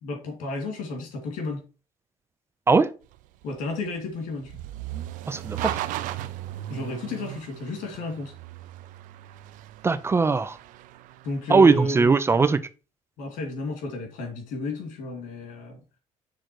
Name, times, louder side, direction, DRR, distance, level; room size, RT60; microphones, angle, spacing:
voice 1, 0.0-1.7 3.4-4.6 6.7-8.3 11.2-12.1 13.2-15.8, left 2 dB, 90° left, 2.6 m, -32 dB
sound 1, 3.0-12.3, right 14 dB, 90° right, 0.5 m, -37 dB
voice 2, 5.3-5.8 9.8-10.6 11.5-12.6, right 4 dB, 20° right, 0.4 m, -19 dB
6.4 x 3.8 x 4.7 m
cardioid pair, 135°, 13 cm